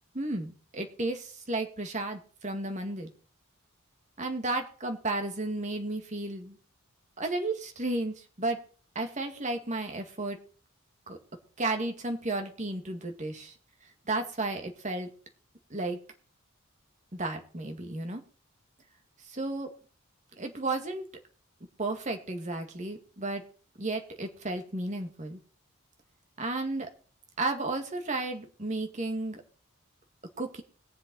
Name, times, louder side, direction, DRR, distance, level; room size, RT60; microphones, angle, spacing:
voice 1, 0.1-3.1 4.2-6.6 7.2-8.6 9.0-10.4 11.1-11.2 11.6-13.5 14.1-15.1 15.7-16.0 17.1-18.2 19.3-19.7 20.4-21.0 21.8-23.4 23.8-25.4 26.4-26.9 27.4-29.4 30.4-30.6, right 2 dB, 35° right, 4 dB, 2.1 m, -33 dB
21.0 x 7.6 x 4.1 m, 0.40 s
head